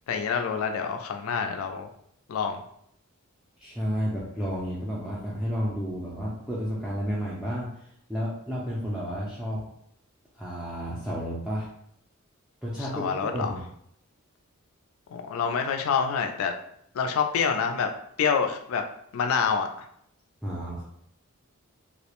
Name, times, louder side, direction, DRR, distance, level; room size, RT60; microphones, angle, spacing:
voice 1, 0.1-1.9 2.3-2.6 12.9-13.5 15.1-16.5 16.9-17.9 18.2-18.8 19.1-19.7, left 6 dB, 70° left, 5 dB, 0.3 m, -27 dB
voice 2, 3.6-7.7 8.1-9.6 10.3-11.7 12.6-13.6 20.4-20.8, equal, 5° right, -8 dB, 0.4 m, -31 dB
2.3 x 2.0 x 2.9 m, 0.72 s
head